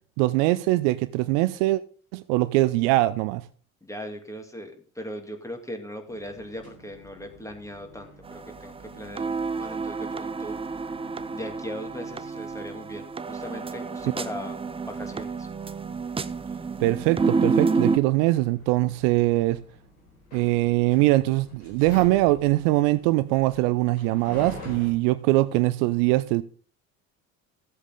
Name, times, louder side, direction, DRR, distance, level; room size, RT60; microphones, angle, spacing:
voice 1, 0.2-1.8 2.1-3.4 16.8-19.6 20.3-26.4, right 18 dB, 60° right, 0.6 m, -22 dB
voice 2, 3.8-10.6 11.3-15.5, equal, 5° left, 2.2 m, -39 dB
sound 1, 6.1-24.9, equal, 85° left, 4.5 m, -48 dB
sound 2, 8.3-18.0, right 4 dB, 15° right, 0.6 m, -29 dB
14.5 x 8.1 x 3.7 m
figure-of-eight pair, 65°, 43 cm